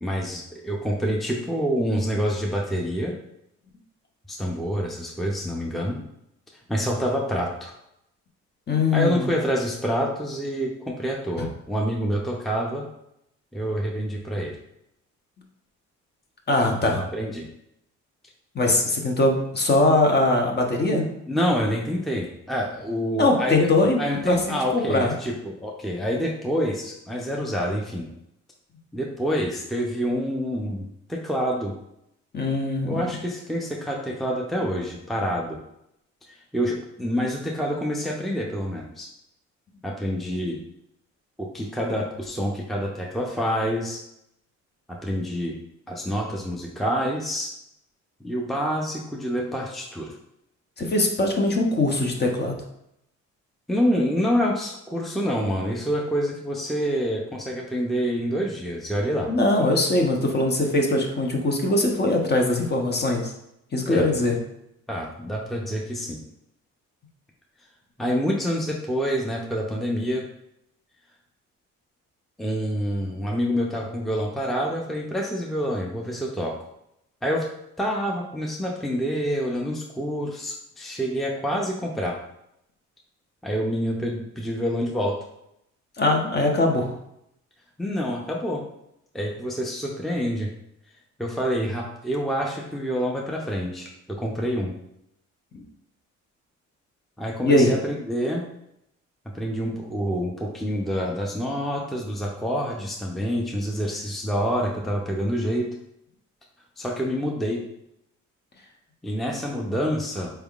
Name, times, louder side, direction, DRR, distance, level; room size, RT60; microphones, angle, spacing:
voice 1, 0.0-3.1 4.3-6.0 6.7-7.7 8.9-12.8 13.5-14.5 16.8-17.5 20.9-23.7 24.0-28.1 28.9-31.7 32.8-35.6 36.5-39.1 39.8-40.6 41.4-44.0 44.9-45.6 45.9-47.5 48.2-50.1 53.7-59.3 63.9-64.1 64.9-66.2 68.0-70.2 72.4-76.5 77.2-77.4 77.8-82.2 83.4-85.2 87.8-88.6 89.1-90.5 91.2-94.7 97.2-98.4 99.3-105.7 106.8-107.6 109.0-110.3, equal, ahead, -1 dB, 0.5 m, -27 dB
voice 2, 8.7-9.3 11.4-11.5 16.5-17.0 18.5-21.0 23.2-25.1 32.3-33.1 50.8-52.6 59.3-63.3 63.7-64.4 86.0-86.9 95.5-95.6 97.4-97.7, left 2 dB, 35° left, 2 dB, 0.8 m, -21 dB
4.4 x 3.4 x 2.4 m, 0.78 s
cardioid pair, 90°, 30 cm